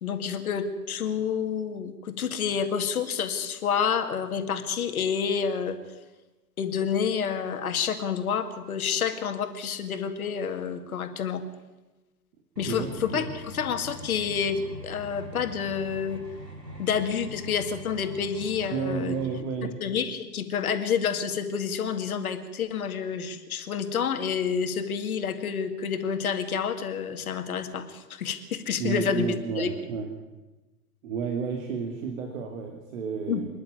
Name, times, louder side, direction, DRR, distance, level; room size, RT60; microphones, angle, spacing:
voice 1, 0.0-5.8 6.6-11.4 12.6-16.2 16.8-19.2 19.6-29.7 33.3-33.4, left 7 dB, 60° left, 8 dB, 2.2 m, -29 dB
sound 1, 12.6-19.4, equal, 80° right, 3.6 m, -42 dB
voice 2, 12.7-13.3 18.7-19.8 28.8-30.1 31.0-33.5, right 5 dB, 50° right, 3 dB, 2.6 m, -31 dB
26.0 x 11.0 x 9.4 m, 1.1 s
figure-of-eight pair, 100°, 48 cm